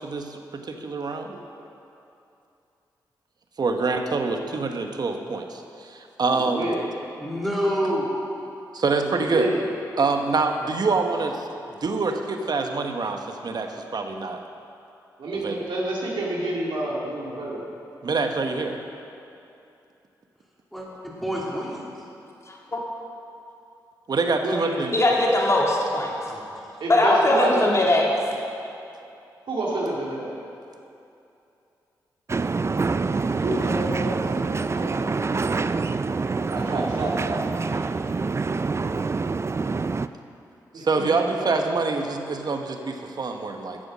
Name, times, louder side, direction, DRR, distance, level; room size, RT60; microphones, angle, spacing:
voice 1, 0.0-1.4 3.6-6.7 8.7-9.5 10.0-11.5 11.8-14.4 15.3-15.6 18.0-18.8 24.1-24.9 40.7-43.8, right 3 dB, 55° right, 5 dB, 1.2 m, -26 dB
voice 2, 6.3-6.8 9.0-9.7 15.2-17.6 24.4-24.9 26.8-27.6 29.5-30.3 33.3-35.5 36.4-37.5 40.7-42.0, right 2 dB, 75° right, -4 dB, 2.3 m, -29 dB
voice 3, 7.2-8.1 20.7-20.9 21.2-21.8 26.3-26.6, equal, ahead, -6 dB, 3.3 m, -27 dB
voice 4, 22.5-22.8 24.9-26.1 26.9-28.1, left 1 dB, 35° left, -3 dB, 2.5 m, -20 dB
sound 1, 32.3-40.1, right 4 dB, 35° right, 0.4 m, -26 dB
13.0 x 7.8 x 6.2 m, 2.7 s
supercardioid pair, 50°, 8 cm